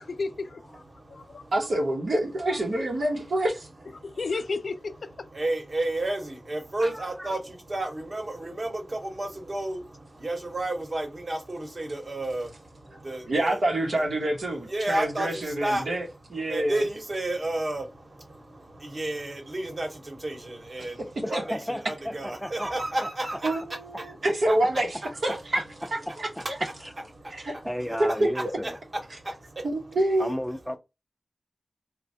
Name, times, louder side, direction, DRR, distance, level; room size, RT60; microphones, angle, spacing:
voice 1, 0.0-0.8 1.1-1.4 4.0-5.3, left 4 dB, 85° left, 0.3 m, -33 dB
voice 2, 0.9-1.5 4.0-4.2 5.3-13.6 14.6-16.1 16.4-23.6 24.0-25.4 27.1-28.0 28.3-29.7, right 1 dB, 50° right, 1.0 m, -32 dB
voice 3, 1.5-3.7 6.8-6.9 12.9-13.0 13.3-16.8 20.8-20.9 21.3-21.4 23.4-25.6 25.9-26.6 27.3-27.6 29.6-30.3, right 1 dB, 85° right, 0.8 m, -27 dB
voice 4, 6.8-7.3 21.2-22.7 23.0-23.1 26.1-26.2 26.8-26.9 27.6-28.8 30.2-30.8, equal, 5° left, 0.4 m, -33 dB
3.1 x 2.1 x 2.6 m
wide cardioid pair, 60°, 0 cm